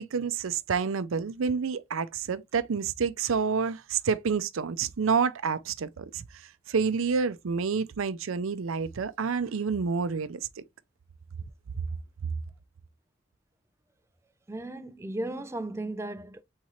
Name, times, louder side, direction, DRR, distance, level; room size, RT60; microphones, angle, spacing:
voice 1, 0.0-6.2 6.7-10.6, right 5 dB, 80° right, 0.5 m, -28 dB
voice 2, 14.5-16.4, right 1 dB, 15° right, 0.4 m, -35 dB
4.2 x 3.7 x 3.0 m
head